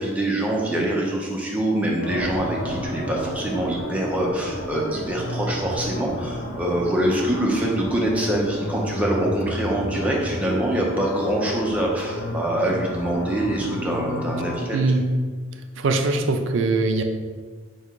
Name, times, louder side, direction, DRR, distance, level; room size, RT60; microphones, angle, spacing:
voice 1, 0.0-14.8, right 1 dB, 5° right, -3 dB, 0.5 m, -24 dB
sound 1, 2.0-14.6, left 1 dB, 75° left, 0.8 m, -31 dB
voice 2, 14.7-15.1 15.8-17.0, right 3 dB, 60° right, 6 dB, 0.4 m, -21 dB
3.6 x 2.8 x 4.5 m, 1.5 s
head